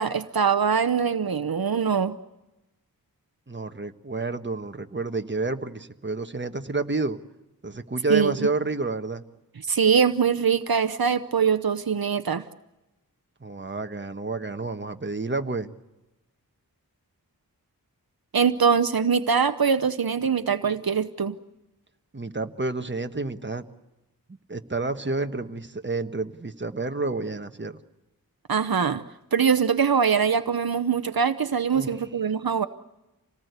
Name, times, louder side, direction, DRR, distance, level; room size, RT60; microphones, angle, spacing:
voice 1, 0.0-2.2 8.1-8.5 9.7-12.4 18.3-21.4 28.5-29.0 29.3-32.7, right 6 dB, 75° right, 0.9 m, -23 dB
voice 2, 3.5-7.2 7.6-9.2 13.4-15.7 22.1-23.6 24.5-27.8 31.7-32.1, right 3 dB, 30° right, 1.3 m, -29 dB
27.5 x 18.5 x 8.2 m
wide cardioid pair, 55°, 36 cm